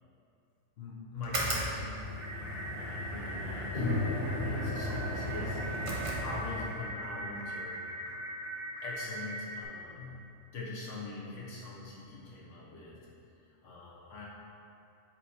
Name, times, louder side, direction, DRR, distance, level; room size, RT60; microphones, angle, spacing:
voice 1, 0.8-2.0 2.3-3.9 4.4-5.6 6.2-7.8 8.8-10.2 10.5-13.0 13.6-14.2, left 3 dB, 65° left, -5 dB, 1.4 m, -43 dB
sound 1, 1.2-6.8, right 1 dB, 35° right, 0.6 m, -37 dB
sound 2, 2.2-9.6, right 1 dB, 10° right, 1.3 m, -41 dB
sound 3, 3.7-8.4, left 2 dB, 45° left, 0.9 m, -37 dB
7.4 x 3.0 x 4.2 m, 2.6 s
omnidirectional pair, 1.3 m